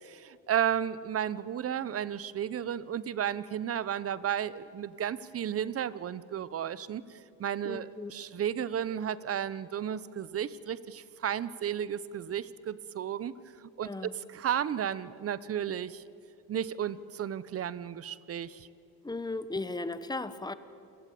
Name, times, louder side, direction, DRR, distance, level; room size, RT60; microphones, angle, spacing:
voice 1, 0.0-13.3 13.6-13.9 14.3-16.0 16.5-18.7, right 9 dB, 40° right, 18 dB, 0.9 m, -33 dB
voice 2, 7.6-8.1 13.8-14.2 19.0-20.5, left 2 dB, 10° left, 13 dB, 1.1 m, -36 dB
28.0 x 18.0 x 8.5 m, 2.6 s
cardioid pair, 120°, 37 cm